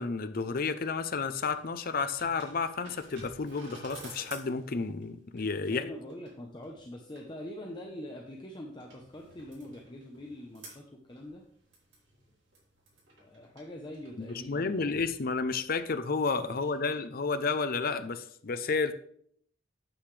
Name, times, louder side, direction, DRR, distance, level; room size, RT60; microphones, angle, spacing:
voice 1, 0.0-5.8 14.2-18.9, left 4 dB, 50° left, 11 dB, 0.6 m, -31 dB
sound 1, 0.9-16.6, right 2 dB, 75° right, 4.0 m, -54 dB
voice 2, 5.7-11.4 13.2-15.1 16.5-17.0, left 1 dB, 25° left, 0 dB, 0.8 m, -44 dB
8.8 x 7.9 x 3.3 m, 0.64 s
head